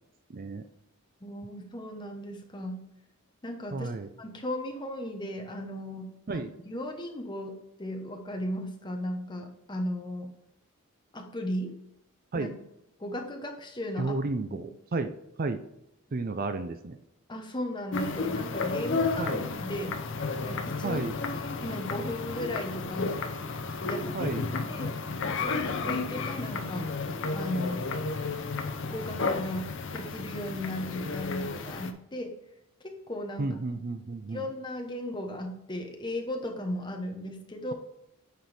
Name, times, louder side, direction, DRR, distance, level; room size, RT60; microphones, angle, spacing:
voice 1, 0.3-0.6 3.7-4.1 6.3-6.5 12.3-12.5 14.0-15.6 16.1-17.0 19.2-19.5 20.8-21.2 24.1-24.4 33.4-34.5, right 3 dB, 40° right, 9 dB, 0.5 m, -32 dB
voice 2, 1.2-2.8 3.4-10.3 11.1-11.7 12.4-12.5 13.0-14.1 14.5-14.6 17.3-19.3 19.6-19.9 20.4-21.0 21.6-23.2 23.8-24.3 24.7-24.9 25.4-26.8 27.3-28.0 28.8-32.3 32.8-33.5 34.3-37.7, left 1 dB, 20° left, 3 dB, 1.0 m, -36 dB
sound 1, 17.9-31.9, left 4 dB, 55° left, 0.7 m, -32 dB
9.2 x 4.5 x 3.4 m, 0.84 s
head